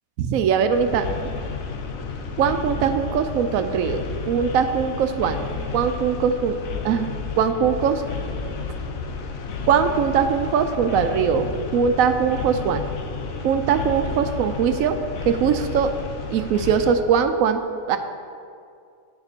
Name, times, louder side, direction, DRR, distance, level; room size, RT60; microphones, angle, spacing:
voice 1, 0.2-1.0 2.4-5.4 5.7-6.6 6.8-7.1 7.4-8.0 9.7-12.8 13.4-14.9 15.3-15.9 16.3-17.6 17.9-18.0, right 7 dB, 90° right, 8 dB, 1.0 m, -21 dB
sound 1, 0.7-16.9, left 4 dB, 90° left, 1.3 m, -31 dB
9.6 x 5.2 x 6.7 m, 2.3 s
omnidirectional pair, 1.4 m